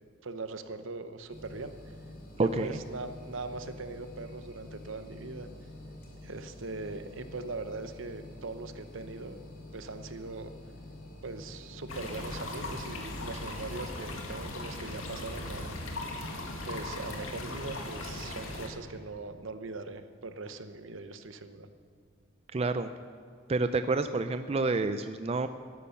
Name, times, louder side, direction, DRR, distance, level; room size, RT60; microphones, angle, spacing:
voice 1, 0.2-1.7 2.3-5.5 6.2-9.4 9.7-10.5 11.2-15.7 16.7-21.7, right 3 dB, 75° right, 10 dB, 0.9 m, -41 dB
sound 1, 1.3-18.6, left 1 dB, 45° left, 2.8 m, -48 dB
voice 2, 2.4-2.8 22.5-22.9 23.5-25.5, right 3 dB, 30° right, 10 dB, 0.4 m, -28 dB
sound 2, 11.9-18.7, left 2 dB, 85° left, 1.9 m, -39 dB
13.0 x 11.0 x 6.9 m, 2.3 s
head